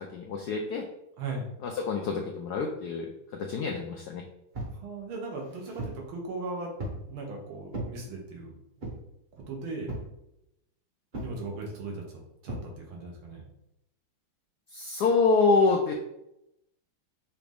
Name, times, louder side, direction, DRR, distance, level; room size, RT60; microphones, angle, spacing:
voice 1, 0.1-0.8 1.6-4.2 14.7-15.9, left 4 dB, 80° left, 2 dB, 0.9 m, -26 dB
voice 2, 1.2-1.5 4.8-6.7 7.1-8.5 9.5-9.9 11.2-12.0 12.4-13.4, right 3 dB, 85° right, -1 dB, 1.9 m, -37 dB
sound 1, 4.5-4.8 5.4-6.0 6.8-7.1 7.7-8.0 8.8-9.1 9.9-10.2 11.1-11.4 12.5-12.7, right 1 dB, 40° right, 0.7 m, -37 dB
5.9 x 2.5 x 3.4 m, 0.84 s
omnidirectional pair, 2.2 m